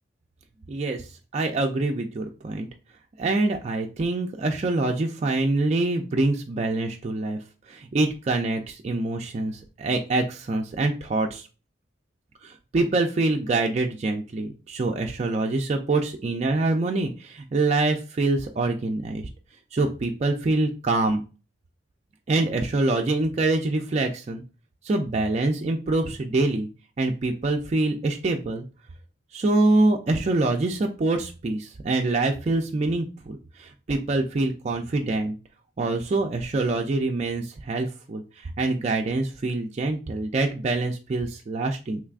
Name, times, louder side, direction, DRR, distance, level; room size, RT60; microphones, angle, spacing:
voice 1, 0.7-2.7 3.2-7.4 7.7-11.5 12.4-19.3 19.7-21.2 22.3-24.4 24.8-26.7 27.0-28.6 29.3-35.4 35.8-42.0, right 2 dB, 35° right, 3 dB, 0.3 m, -25 dB
3.4 x 3.2 x 2.4 m, 0.33 s
head